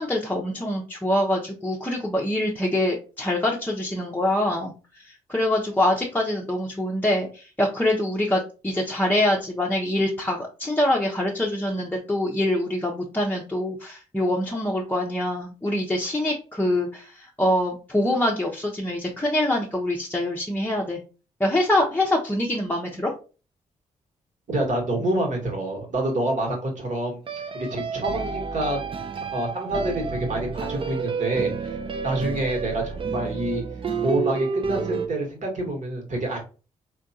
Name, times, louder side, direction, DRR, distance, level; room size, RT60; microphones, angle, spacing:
voice 1, 0.0-21.0 21.4-23.1, left 1 dB, 10° left, -2 dB, 0.7 m, -25 dB
voice 2, 24.5-27.2 27.5-28.8 29.2-31.8 32.0-33.6 34.0-36.4, right 1 dB, 50° right, 2 dB, 1.3 m, -27 dB
sound 1, 25.0-25.1 27.3-35.1, right 5 dB, 35° right, 0.5 m, -30 dB
3.4 x 2.2 x 2.6 m, 0.35 s
hypercardioid pair, 45°, 16 cm